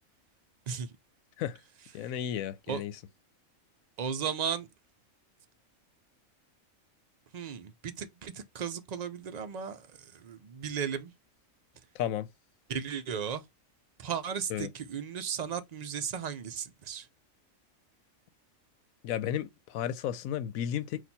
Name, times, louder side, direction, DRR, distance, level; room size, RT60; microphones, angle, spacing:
voice 1, 1.9-2.9 11.9-12.3 14.5-14.7 19.0-21.0, left 10 dB, 85° left, 1.0 m, -33 dB
voice 2, 4.0-4.7 7.3-11.1 12.7-13.4 14.0-17.1, right 7 dB, 65° right, 0.4 m, -35 dB
4.4 x 2.5 x 4.0 m
omnidirectional pair, 1.4 m